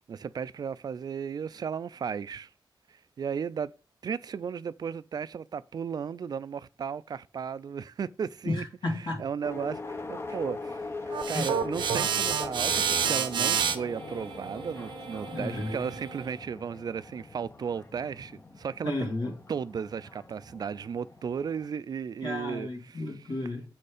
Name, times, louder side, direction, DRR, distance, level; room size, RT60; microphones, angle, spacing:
voice 1, 0.1-2.5 2.9-3.7 4.0-8.6 9.2-19.1 19.5-23.0, right 7 dB, 55° right, 0.3 m, -35 dB
voice 2, 8.5-9.2 11.3-11.5 15.3-15.8 18.8-19.3 22.2-23.6, left 2 dB, 75° left, 2.3 m, -32 dB
sound 1, 9.4-21.7, left 3 dB, 30° left, 0.8 m, -41 dB
sound 2, 11.1-16.3, right 7 dB, 90° right, 0.7 m, -30 dB
7.2 x 4.3 x 5.0 m
cardioid pair, 70°, 8 cm